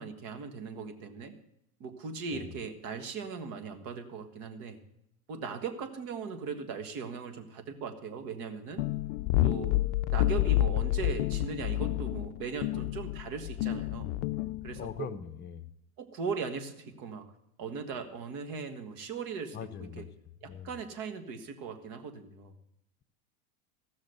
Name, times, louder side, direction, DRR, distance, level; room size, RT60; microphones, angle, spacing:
voice 1, 0.0-1.3 1.8-4.8 5.3-8.8 9.4-9.7 10.1-14.1 14.6-15.1 16.0-17.2 17.6-19.6 19.9-20.0 20.4-22.5, right 5 dB, 50° right, 8 dB, 1.7 m, -38 dB
sound 1, 8.8-15.0, left 15 dB, 55° left, 0.5 m, -29 dB
voice 2, 14.8-15.7 19.5-20.1 20.4-20.7, left 8 dB, 25° left, 10 dB, 0.8 m, -41 dB
15.0 x 6.4 x 6.7 m, 0.82 s
hypercardioid pair, 95°, 43 cm